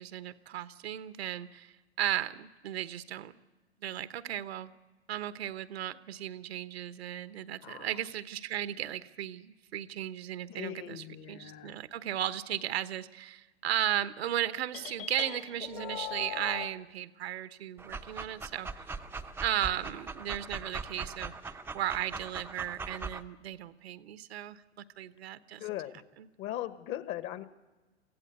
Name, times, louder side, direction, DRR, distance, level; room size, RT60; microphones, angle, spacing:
voice 1, 0.0-3.3 3.8-4.7 5.1-18.8 19.4-24.6 25.0-25.6, right 12 dB, 65° right, 13 dB, 1.1 m, -35 dB
voice 2, 7.6-8.0 10.5-11.7 25.6-26.0 26.4-27.4, left 13 dB, 35° left, 13 dB, 1.3 m, -39 dB
sound 1, 14.7-16.7, left 12 dB, 55° left, 2.3 m, -40 dB
Dog, 17.8-23.2, right 4 dB, 5° right, 0.7 m, -41 dB
24.0 x 15.5 x 8.2 m, 1.2 s
hypercardioid pair, 110°, 33 cm